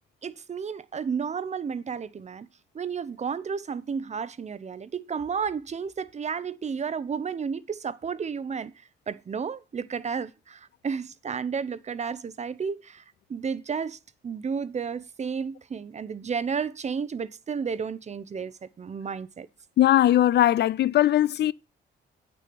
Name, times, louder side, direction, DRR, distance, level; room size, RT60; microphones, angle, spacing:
voice 1, 0.2-2.5 2.7-8.7 9.1-13.0 13.3-19.5, right 6 dB, 35° right, 0.7 m, -32 dB
voice 2, 19.8-21.5, left 13 dB, 60° left, 0.4 m, -20 dB
8.3 x 6.9 x 5.2 m
cardioid pair, 90°, 20 cm